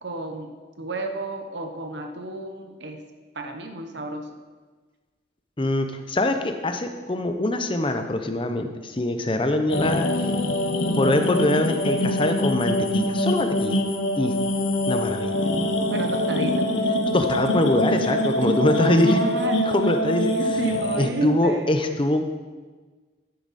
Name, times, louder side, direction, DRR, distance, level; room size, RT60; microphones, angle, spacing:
voice 1, 0.0-3.0 3.3-4.3 15.9-16.7 18.4-21.7, right 2 dB, 60° right, 4 dB, 0.9 m, -32 dB
voice 2, 5.6-10.1 10.9-13.8 14.2-14.3 14.9-15.4 17.1-19.2 19.7-20.4 21.0-22.2, left 1 dB, 25° left, 7 dB, 0.7 m, -23 dB
sound 1, 9.7-21.1, left 1 dB, 75° left, 1.0 m, -24 dB
9.9 x 9.7 x 4.2 m, 1.4 s
head